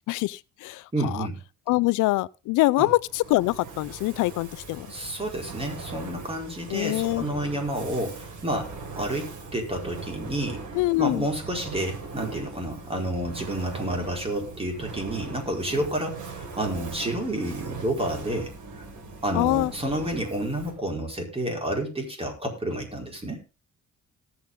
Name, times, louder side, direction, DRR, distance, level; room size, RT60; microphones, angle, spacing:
voice 1, 0.1-0.8 1.7-4.9 6.7-7.2 10.8-11.2 19.3-19.7, left 19 dB, 90° left, 0.5 m, -24 dB
voice 2, 0.9-1.4 2.8-2.9 4.9-10.6 11.0-18.5 19.2-23.4, right 1 dB, 20° right, 4.9 m, -30 dB
Fire, 3.0-20.9, right 4 dB, 75° right, 4.5 m, -40 dB
19.0 x 7.2 x 3.7 m
cardioid pair, 90°, 30 cm